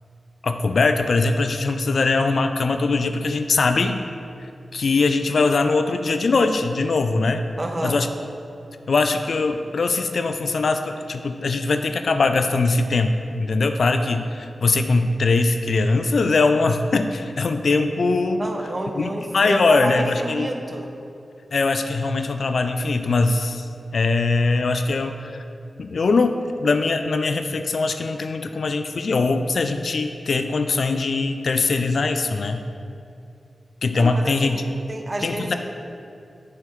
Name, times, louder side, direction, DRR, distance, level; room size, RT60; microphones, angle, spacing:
voice 1, 0.4-4.0 4.7-7.5 7.8-8.1 8.9-18.5 18.9-20.5 21.5-25.4 25.8-32.6 33.8-34.6 35.2-35.5, left 3 dB, 70° left, 7 dB, 0.3 m, -21 dB
voice 2, 7.6-8.0 18.4-20.9 34.0-35.5, right 1 dB, 30° right, 3 dB, 0.6 m, -30 dB
7.5 x 5.5 x 3.2 m, 2.5 s
wide cardioid pair, 105°, 0 cm